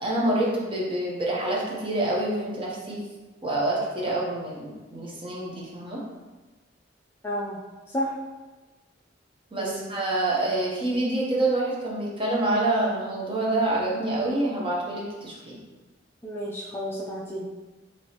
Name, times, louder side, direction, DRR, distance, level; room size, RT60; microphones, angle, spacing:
voice 1, 0.0-3.0 3.4-6.0 9.5-15.6, right 2 dB, 30° right, -5 dB, 0.9 m, -27 dB
voice 2, 7.2-7.6 7.9-8.1 9.6-9.9 16.2-17.4, equal, 15° left, -4 dB, 0.4 m, -31 dB
4.7 x 3.0 x 2.9 m, 1.2 s
head